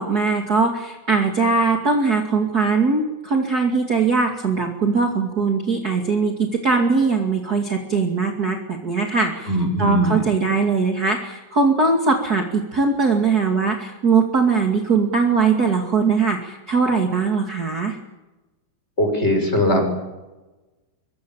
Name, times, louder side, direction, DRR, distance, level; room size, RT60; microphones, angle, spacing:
voice 1, 0.0-9.5 9.8-18.0, right 4 dB, 35° right, 2 dB, 1.7 m, -20 dB
voice 2, 9.5-10.3 19.0-20.1, equal, 15° left, 4 dB, 6.1 m, -20 dB
24.5 x 24.0 x 7.3 m, 1.1 s
omnidirectional pair, 5.4 m